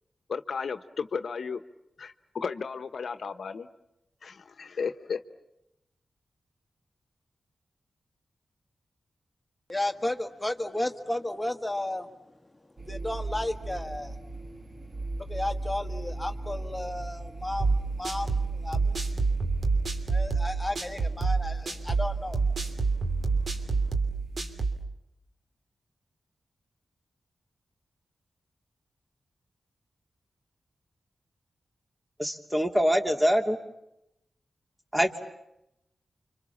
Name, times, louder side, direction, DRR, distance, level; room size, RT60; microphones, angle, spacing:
voice 1, 0.3-1.6 2.0-3.7 4.2-5.2, left 5 dB, 75° left, 9 dB, 1.0 m, -34 dB
voice 2, 9.7-12.1 12.8-14.2 15.2-19.0 20.1-22.4, left 1 dB, 15° left, 6 dB, 1.5 m, -33 dB
sound 1, 12.8-24.5, right 2 dB, 50° right, 2.7 m, -38 dB
sound 2, 17.6-24.8, right 4 dB, 65° right, 3.0 m, -27 dB
voice 3, 32.2-33.6 34.9-35.1, equal, 15° right, 4 dB, 2.9 m, -24 dB
30.0 x 26.0 x 7.3 m, 0.86 s
cardioid pair, 55°, 0 cm